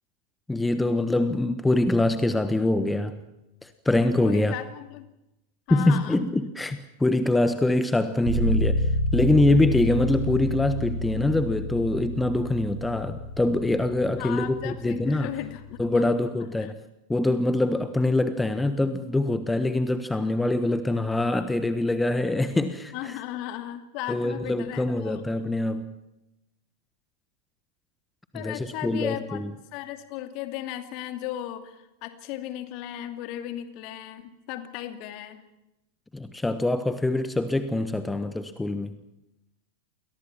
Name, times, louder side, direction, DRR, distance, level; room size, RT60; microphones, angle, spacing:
voice 1, 0.5-3.2 3.6-4.5 5.7-15.3 15.8-16.8 17.1-23.2 24.1-25.9 28.3-29.5 36.1-39.0, left 2 dB, 5° left, 11 dB, 1.3 m, -24 dB
voice 2, 4.2-5.1 5.7-6.2 14.2-16.1 16.6-16.7 22.9-25.2 28.3-29.4 29.7-35.4, left 12 dB, 45° left, 8 dB, 2.6 m, -36 dB
sound 1, 8.2-16.0, left 1 dB, 50° right, 6.4 m, -29 dB
29.5 x 23.0 x 6.0 m, 0.92 s
figure-of-eight pair, 90°, 0 cm